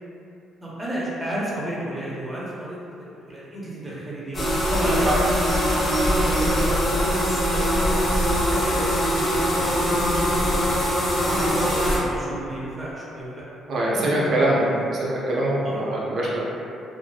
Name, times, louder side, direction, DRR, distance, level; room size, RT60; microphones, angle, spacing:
voice 1, 0.6-4.4 4.7-5.1 5.3-8.0 8.3-10.8 11.2-13.4 13.9-14.7 15.6-15.8, equal, 20° right, -7 dB, 0.7 m, -32 dB
sound 1, 4.3-12.0, equal, 25° left, 0.7 m, -22 dB
voice 2, 4.8-5.1 13.7-16.4, right 1 dB, 55° right, -6 dB, 0.6 m, -23 dB
2.7 x 2.1 x 2.3 m, 2.6 s
cardioid pair, 100°, 0 cm